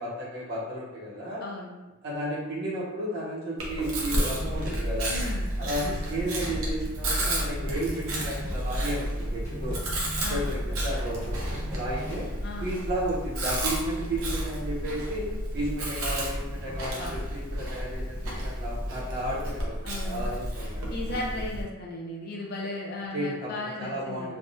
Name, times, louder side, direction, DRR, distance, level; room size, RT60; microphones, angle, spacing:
voice 1, 0.0-1.5 2.0-5.1 5.6-9.9 10.3-12.3 12.6-15.3 15.5-20.9 23.1-24.4, right 1 dB, 50° right, -7 dB, 1.0 m, -33 dB
voice 2, 1.4-1.8 5.1-6.0 10.2-10.5 12.4-12.7 16.6-17.2 19.8-20.3 20.9-24.3, left 2 dB, 45° left, -2 dB, 0.5 m, -36 dB
Chewing mastication, 3.6-21.6, right 1 dB, 75° right, 0.7 m, -32 dB
sound 1, 4.2-12.2, right 1 dB, 15° left, 0.9 m, -36 dB
3.4 x 2.2 x 2.6 m, 1.1 s
head